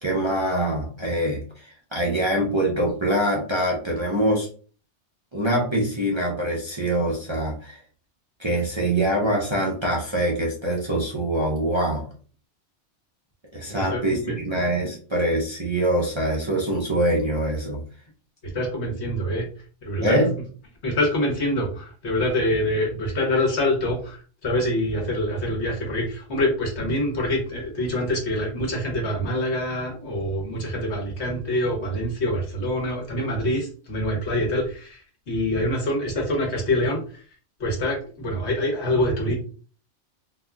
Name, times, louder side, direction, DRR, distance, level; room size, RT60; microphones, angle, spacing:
voice 1, 0.0-4.5 5.3-7.8 8.4-12.1 13.5-17.8 20.0-20.3, right 1 dB, 30° right, -3 dB, 0.6 m, -24 dB
voice 2, 13.6-14.4 18.5-19.5 19.8-20.2 20.8-37.2 37.6-39.3, left 1 dB, 65° left, 1 dB, 1.3 m, -25 dB
4.0 x 2.8 x 2.3 m, 0.41 s
omnidirectional pair, 1.2 m